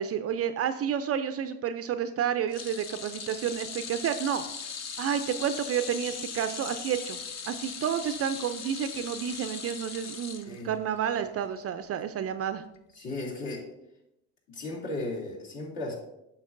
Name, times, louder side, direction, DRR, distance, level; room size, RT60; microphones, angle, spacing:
voice 1, 0.0-4.4 5.0-7.2 7.5-12.6, right 8 dB, 35° right, 10 dB, 0.4 m, -30 dB
floating water fast, 2.5-11.0 11.3-11.6 12.8-12.9, left 6 dB, 40° left, 0.8 m, -39 dB
voice 2, 12.9-13.6 14.5-15.9, left 2 dB, 55° left, -3 dB, 2.6 m, -35 dB
8.4 x 6.2 x 2.5 m, 0.86 s
hypercardioid pair, 70°, 42 cm